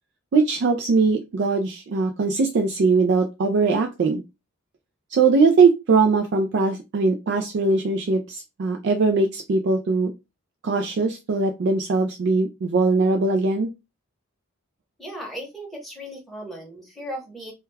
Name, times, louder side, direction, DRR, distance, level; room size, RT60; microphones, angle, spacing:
voice 1, 0.3-4.2 5.1-10.1 10.6-13.7, right 4 dB, 50° right, 3 dB, 0.3 m, -21 dB
voice 2, 15.0-17.5, equal, ahead, -2 dB, 0.8 m, -36 dB
2.2 x 2.2 x 3.1 m, 0.24 s
head